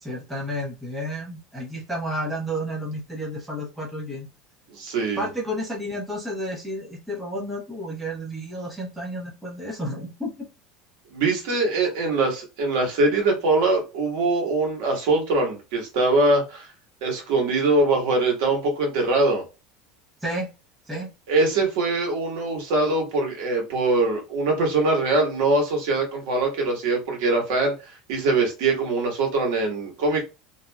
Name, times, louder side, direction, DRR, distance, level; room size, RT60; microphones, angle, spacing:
voice 1, 0.0-4.3 5.2-10.5 20.2-20.5 20.9-21.1, equal, 10° right, 1.1 m, -31 dB
voice 2, 4.7-5.3 11.1-16.7 17.0-19.4 21.3-27.7 28.1-30.2, right 2 dB, 70° right, 1.3 m, -22 dB
2.7 x 2.7 x 2.3 m
supercardioid pair, 140°, 0 cm